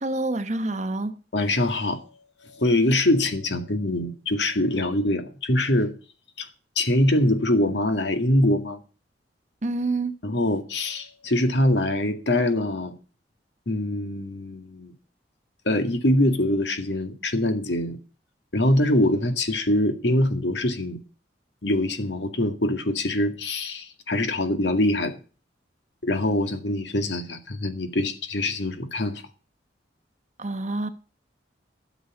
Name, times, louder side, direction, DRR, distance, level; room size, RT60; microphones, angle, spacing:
voice 1, 0.0-1.2 9.6-10.2 30.4-30.9, right 2 dB, 40° right, 1.1 m, -27 dB
voice 2, 1.3-2.0 2.5-5.9 6.4-6.5 6.8-8.8 10.2-12.9 13.7-14.9 15.7-18.0 18.5-21.0 21.6-25.2 26.0-29.2, left 1 dB, 75° left, 2.0 m, -23 dB
12.5 x 7.3 x 7.2 m
head